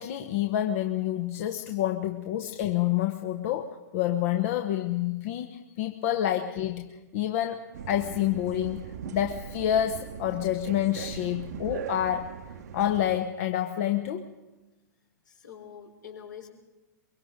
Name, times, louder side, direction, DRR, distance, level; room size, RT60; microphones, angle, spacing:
voice 1, 0.0-6.8 7.1-12.3 12.7-14.2, left 11 dB, 50° left, 6 dB, 1.1 m, -28 dB
sound 1, 7.7-13.2, right 8 dB, 60° right, 0.9 m, -40 dB
voice 2, 15.3-16.5, left 8 dB, 70° left, 1 dB, 4.2 m, -45 dB
23.0 x 23.0 x 5.1 m, 1.1 s
figure-of-eight pair, 105°, 10 cm